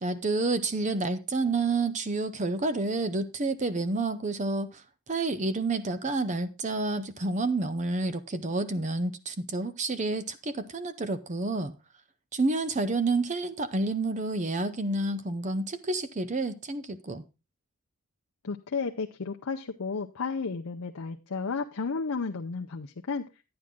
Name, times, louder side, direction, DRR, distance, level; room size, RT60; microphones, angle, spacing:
voice 1, 0.0-11.7 12.3-17.2, right 3 dB, 30° right, 0.6 m, -29 dB
voice 2, 18.4-23.3, left 4 dB, 70° left, 0.6 m, -33 dB
10.0 x 9.6 x 3.6 m
head